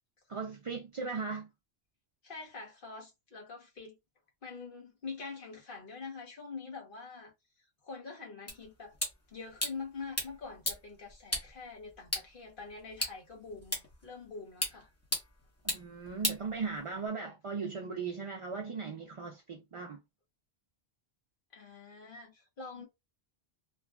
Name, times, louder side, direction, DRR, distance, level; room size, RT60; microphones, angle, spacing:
voice 1, 0.3-1.5 15.7-20.0, right 5 dB, 55° right, 0.3 m, -38 dB
voice 2, 2.2-4.0 4.4-7.3 7.8-9.0 9.3-14.9 21.5-22.9, left 4 dB, 55° left, 1.2 m, -45 dB
sound 1, 8.5-17.1, equal, 15° left, 0.9 m, -39 dB
3.1 x 2.3 x 2.2 m
omnidirectional pair, 1.1 m